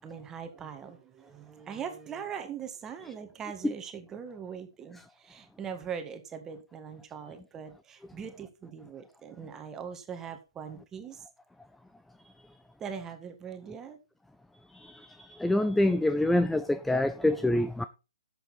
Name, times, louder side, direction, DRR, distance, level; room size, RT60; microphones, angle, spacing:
voice 1, 0.0-11.3 12.8-14.0, right 7 dB, 15° right, 1.8 m, -41 dB
voice 2, 15.4-17.8, left 1 dB, 5° left, 0.4 m, -25 dB
12.0 x 7.9 x 4.3 m
hypercardioid pair, 135°, 3 cm